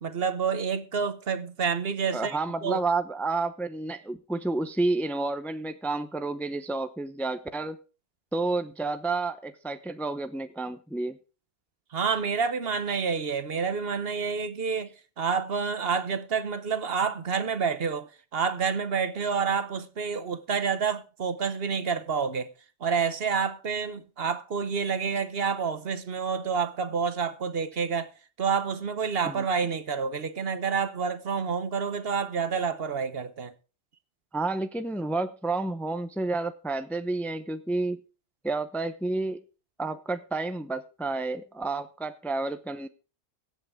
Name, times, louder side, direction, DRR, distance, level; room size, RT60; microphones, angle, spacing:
voice 1, 0.0-2.8 11.9-22.5 22.8-28.1 28.4-33.5, right 6 dB, 60° right, 1.1 m, -28 dB
voice 2, 2.1-7.8 8.3-11.2 29.2-29.5 34.3-38.0 38.4-39.4 39.8-42.9, right 3 dB, ahead, 0.7 m, -30 dB
23.0 x 8.1 x 3.6 m
omnidirectional pair, 1.2 m